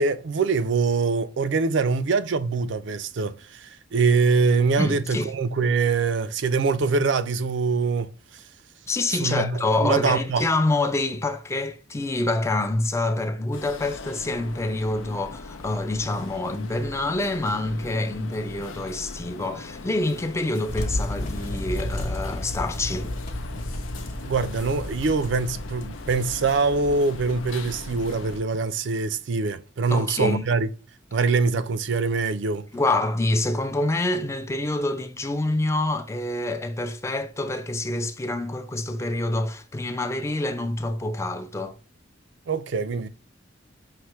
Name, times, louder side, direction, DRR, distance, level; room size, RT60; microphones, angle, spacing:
voice 1, 0.0-8.4 9.2-10.5 24.2-30.7 31.1-32.7 42.5-43.1, right 4 dB, 65° right, 0.4 m, -24 dB
voice 2, 4.8-5.3 8.9-23.1 29.9-30.4 32.7-41.8, left 2 dB, 15° left, 0.3 m, -26 dB
sound 1, 13.5-28.4, left 3 dB, 85° left, 0.5 m, -40 dB
sound 2, 20.7-28.3, left 1 dB, 40° left, 1.0 m, -33 dB
5.6 x 2.1 x 3.1 m
head